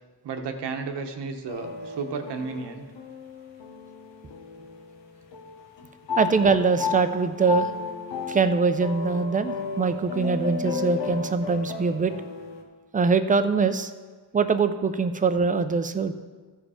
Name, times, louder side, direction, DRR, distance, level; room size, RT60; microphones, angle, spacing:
voice 1, 0.2-2.8, right 4 dB, 70° right, 6 dB, 1.1 m, -33 dB
sound 1, 1.5-5.0 5.3-12.6, left 5 dB, 90° left, 1.3 m, -34 dB
voice 2, 6.2-7.7 8.3-12.1 12.9-13.9 14.3-16.1, right 4 dB, 20° right, 10 dB, 0.5 m, -23 dB
14.0 x 5.1 x 4.9 m, 1.4 s
cardioid pair, 110°, 43 cm